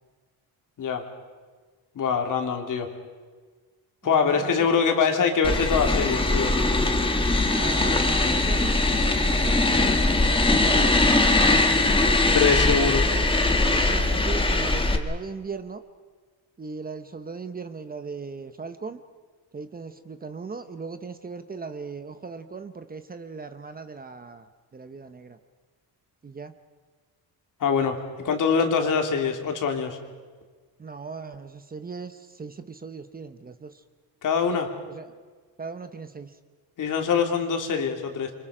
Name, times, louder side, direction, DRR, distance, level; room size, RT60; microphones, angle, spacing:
voice 1, 1.9-2.9 4.0-6.5 12.3-13.1 27.6-30.0 34.2-34.7 36.8-38.3, left 6 dB, 55° left, 4 dB, 3.0 m, -24 dB
voice 2, 4.1-5.1 7.5-9.7 10.5-11.0 11.6-12.1 13.0-13.1 13.8-15.8 16.6-19.0 19.5-24.4 24.7-25.4 26.2-26.5 30.8-33.7 34.9-35.1 35.6-36.3, right 4 dB, 25° right, 9 dB, 1.0 m, -38 dB
sound 1, 5.4-15.0, left 2 dB, 15° left, 1.6 m, -21 dB
29.0 x 25.0 x 5.1 m, 1.5 s
cardioid pair, 135°, 38 cm